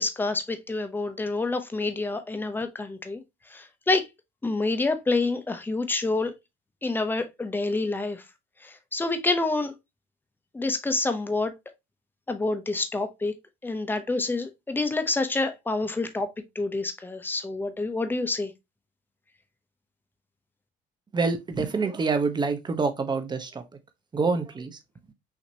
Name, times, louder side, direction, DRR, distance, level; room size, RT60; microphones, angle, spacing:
voice 1, 0.0-3.2 3.5-4.0 4.4-6.3 6.8-8.2 8.6-9.7 10.5-11.5 12.3-13.3 13.6-16.3 16.5-18.5, left 3 dB, 10° left, 0.8 m, -27 dB
voice 2, 21.1-23.6 24.1-24.8, right 4 dB, 25° right, 0.9 m, -26 dB
5.9 x 2.9 x 2.8 m
cardioid pair, 110°, 17 cm